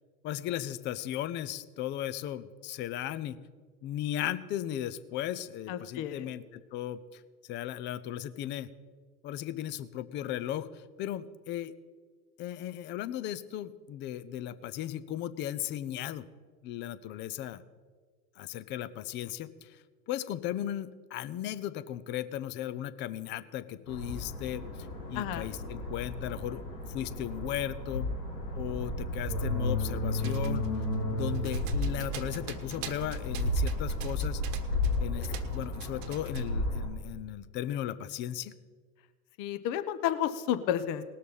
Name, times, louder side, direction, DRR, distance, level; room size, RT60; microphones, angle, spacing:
voice 1, 0.2-3.4 3.8-8.7 9.2-11.7 12.4-16.3 16.6-17.6 18.4-24.6 25.1-26.6 26.9-28.1 28.6-30.7 31.1-34.4 35.0-38.5, left 12 dB, 25° left, 14 dB, 0.4 m, -36 dB
voice 2, 5.7-6.3 25.1-25.5 39.4-41.0, left 10 dB, 40° left, 12 dB, 0.9 m, -31 dB
sound 1, 23.9-36.9, left 1 dB, 90° left, 3.3 m, -33 dB
sound 2, 30.2-35.0 35.2-36.5, right 8 dB, 50° right, 1.2 m, -44 dB
19.0 x 6.6 x 5.3 m, 1.5 s
hypercardioid pair, 95°, 47 cm